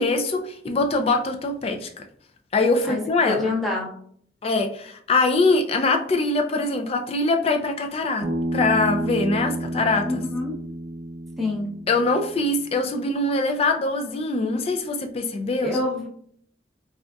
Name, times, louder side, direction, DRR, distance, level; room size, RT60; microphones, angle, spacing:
voice 1, 0.0-2.0 2.5-3.5 4.4-10.1 11.9-15.8, left 3 dB, 35° left, 5 dB, 0.3 m, -23 dB
voice 2, 2.9-3.9 10.0-10.6 11.4-11.7 15.6-16.1, left 2 dB, ahead, -4 dB, 0.7 m, -26 dB
Bass guitar, 8.2-12.5, right 1 dB, 90° right, 0.7 m, -30 dB
3.8 x 2.3 x 2.2 m, 0.63 s
head